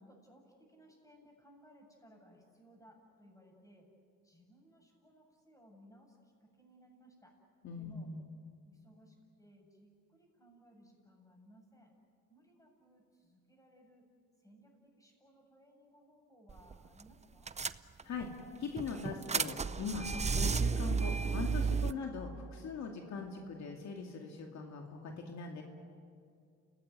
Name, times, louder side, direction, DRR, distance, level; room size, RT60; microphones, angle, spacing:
voice 1, 0.0-3.9 4.2-7.3 7.7-8.1 8.6-11.9 12.3-14.0 14.4-17.5, equal, 10° left, 1 dB, 7.4 m, -62 dB
voice 2, 7.6-8.3 18.0-18.3 18.6-25.6, left 4 dB, 65° left, 2 dB, 2.4 m, -41 dB
sound 1, 16.5-16.7 17.0-17.1 17.5-18.3 18.8-21.9, right 5 dB, 20° right, 0.7 m, -33 dB
29.5 x 17.5 x 9.5 m, 2.3 s
cardioid pair, 90°, 30 cm